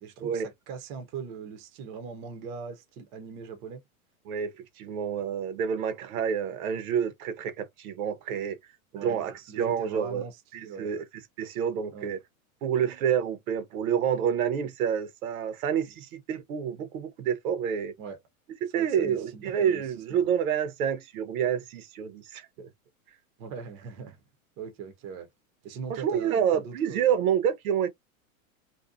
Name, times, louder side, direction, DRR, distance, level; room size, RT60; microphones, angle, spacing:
voice 1, 0.0-3.8 8.9-10.9 11.9-12.1 18.0-18.2 18.7-19.8 20.1-20.3 23.4-24.2 24.6-25.3 25.6-27.1, right 6 dB, 25° right, 0.5 m, -40 dB
voice 2, 4.3-8.6 8.9-10.2 10.5-11.0 11.4-12.2 12.6-17.9 18.6-22.7 25.9-27.9, right 8 dB, 75° right, 0.8 m, -28 dB
2.6 x 2.1 x 2.3 m
supercardioid pair, 150°, 43 cm